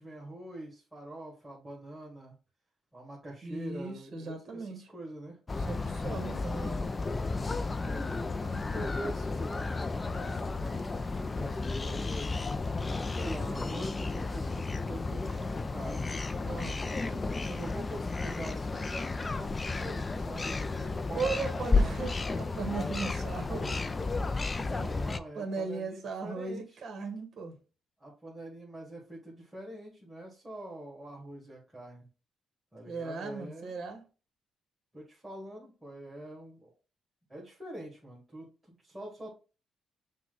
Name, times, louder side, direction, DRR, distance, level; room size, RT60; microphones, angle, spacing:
voice 1, 0.0-2.4 2.9-5.4 7.6-9.8 10.1-12.2 13.1-16.1 16.9-22.1 24.5-26.8 28.0-32.1 32.7-33.8 34.9-36.7 37.3-39.4, right 1 dB, 10° right, 1.8 m, -45 dB
voice 2, 3.4-4.8 5.6-6.9 16.4-16.8 21.1-23.8 25.3-27.6 32.9-34.0, right 4 dB, 55° right, 1.2 m, -37 dB
sound 1, 5.5-25.2, left 3 dB, 25° left, 0.4 m, -33 dB
6.0 x 2.2 x 3.8 m
cardioid pair, 90°, 0 cm